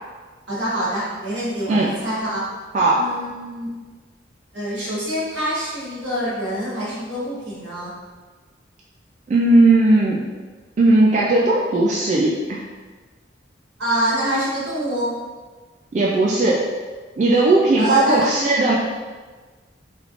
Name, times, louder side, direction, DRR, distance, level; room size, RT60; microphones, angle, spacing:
voice 1, 0.5-2.4 2.9-3.7 4.5-7.9 13.8-15.1 17.8-18.2, right 1 dB, 85° right, -9 dB, 1.5 m, -25 dB
voice 2, 2.7-3.1 9.3-10.2 10.8-12.6 15.9-16.7 17.2-18.7, right 2 dB, 40° right, -4 dB, 0.3 m, -17 dB
3.4 x 3.1 x 2.4 m, 1.4 s
head